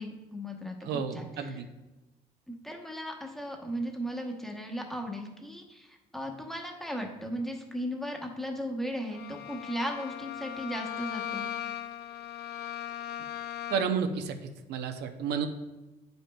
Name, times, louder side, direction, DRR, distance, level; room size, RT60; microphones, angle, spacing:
voice 1, 0.0-0.8 1.1-1.5 2.6-11.5, equal, ahead, 2 dB, 0.9 m, -36 dB
voice 2, 0.8-1.7 13.7-14.4 14.7-15.5, right 6 dB, 80° right, 7 dB, 0.6 m, -31 dB
Bowed string instrument, 9.1-14.1, left 11 dB, 75° left, 0.5 m, -38 dB
8.7 x 5.3 x 2.2 m, 1.1 s
cardioid pair, 110°, 17 cm